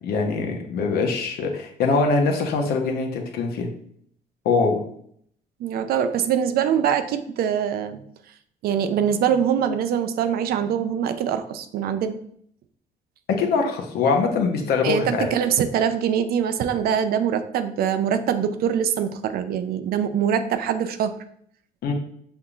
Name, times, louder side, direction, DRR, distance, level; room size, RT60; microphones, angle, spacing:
voice 1, 0.0-3.7 4.4-4.8 13.3-15.3 21.8-21.9, left 4 dB, 70° left, 2 dB, 0.9 m, -23 dB
voice 2, 5.6-8.0 8.6-12.1 14.8-21.1, right 8 dB, 65° right, 9 dB, 0.5 m, -23 dB
5.5 x 3.5 x 2.4 m, 0.66 s
cardioid pair, 110°, 17 cm